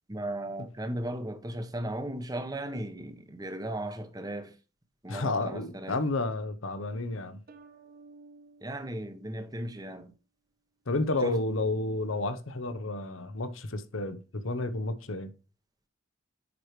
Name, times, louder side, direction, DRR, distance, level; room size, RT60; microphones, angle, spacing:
voice 1, 0.1-4.6 5.0-6.0 8.6-10.1 11.2-11.4, right 1 dB, 20° right, 0.9 m, -36 dB
voice 2, 5.1-7.4 10.9-15.3, left 2 dB, 85° left, 0.9 m, -31 dB
sound 1, 7.5-10.1, right 3 dB, 50° right, 0.9 m, -55 dB
9.2 x 4.9 x 3.1 m
head